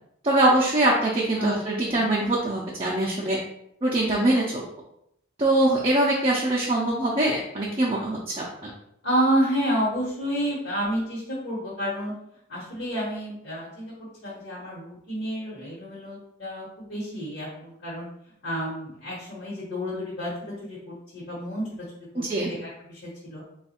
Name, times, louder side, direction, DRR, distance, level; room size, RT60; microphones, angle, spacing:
voice 1, 0.2-3.4 3.8-4.6 5.4-8.7 22.2-22.5, right 1 dB, 25° right, -4 dB, 0.5 m, -23 dB
voice 2, 1.4-2.1 9.0-12.1 12.5-18.1 18.4-21.6 22.0-23.4, equal, 55° left, -7 dB, 1.2 m, -30 dB
3.4 x 2.3 x 4.2 m, 0.75 s
head